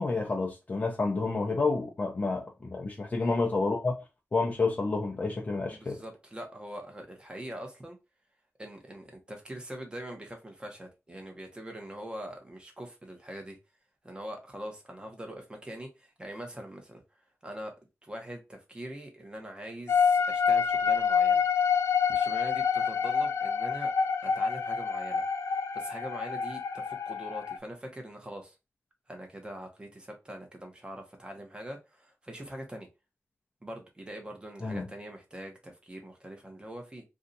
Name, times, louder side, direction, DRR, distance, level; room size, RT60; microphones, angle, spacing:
voice 1, 0.0-4.0 4.3-6.0 34.6-34.8, left 3 dB, 35° left, 0.6 m, -29 dB
voice 2, 5.7-8.0 8.6-13.6 14.0-17.0 17.4-17.7 18.0-21.4 22.1-23.9 24.2-25.2 25.7-28.5 29.1-32.9 33.6-37.0, right 1 dB, 20° right, 0.9 m, -43 dB
sound 1, 19.9-27.6, left 6 dB, 90° left, 0.4 m, -27 dB
2.7 x 2.4 x 3.9 m
wide cardioid pair, 135°, 5 cm